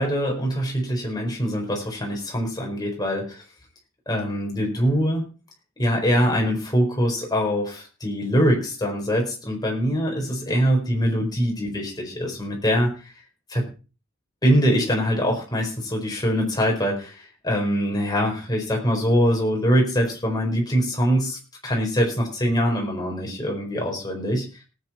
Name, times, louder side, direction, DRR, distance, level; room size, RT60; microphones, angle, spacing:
voice 1, 0.0-3.4 4.1-5.3 5.8-12.9 13.5-13.6 14.4-24.5, equal, 20° left, 0 dB, 4.5 m, -23 dB
18.5 x 8.7 x 4.3 m, 0.34 s
head